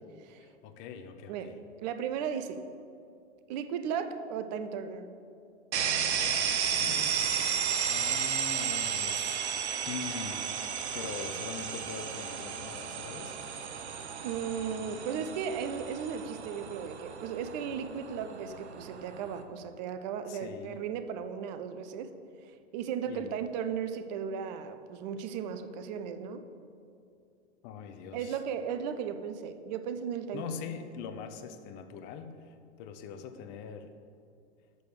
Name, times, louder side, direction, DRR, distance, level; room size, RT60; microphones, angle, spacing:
voice 1, 0.4-1.6 6.7-7.3 7.9-9.4 9.8-10.5 10.9-13.4 20.3-20.8 23.1-23.3 27.6-28.4 30.3-33.9, left 6 dB, 30° left, 8 dB, 0.6 m, -42 dB
voice 2, 1.8-2.7 3.5-5.1 14.2-22.1 22.4-26.4 28.1-30.6, right 7 dB, 40° right, 9 dB, 0.5 m, -36 dB
sound 1, 5.7-19.4, right 7 dB, 75° right, 0.9 m, -33 dB
6.5 x 5.3 x 6.3 m, 2.5 s
hypercardioid pair, 120°, 34 cm